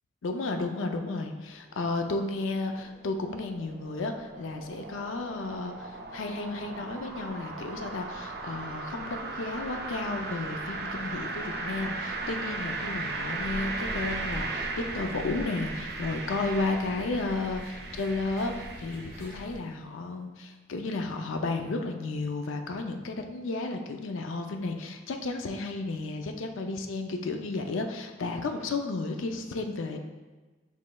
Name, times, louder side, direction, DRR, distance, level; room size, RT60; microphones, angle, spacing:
voice 1, 0.2-30.0, left 3 dB, 85° left, 5 dB, 0.4 m, -33 dB
sound 1, 2.3-19.5, right 3 dB, 55° right, 0.4 m, -37 dB
sound 2, 13.3-19.6, equal, 50° left, 1.3 m, -44 dB
7.3 x 3.1 x 2.3 m, 1.3 s
head